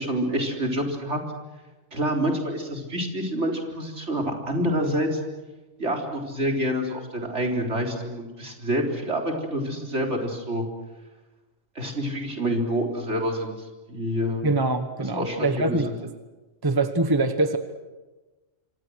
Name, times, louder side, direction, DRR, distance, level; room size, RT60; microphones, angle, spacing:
voice 1, 0.1-1.2 1.9-5.2 5.8-10.6 11.8-13.5 13.9-14.4 15.0-15.9, equal, 60° right, 1 dB, 4.2 m, -27 dB
voice 2, 14.4-16.1 16.6-17.6, right 2 dB, 20° right, 8 dB, 1.2 m, -24 dB
27.5 x 25.0 x 6.4 m, 1.2 s
omnidirectional pair, 1.3 m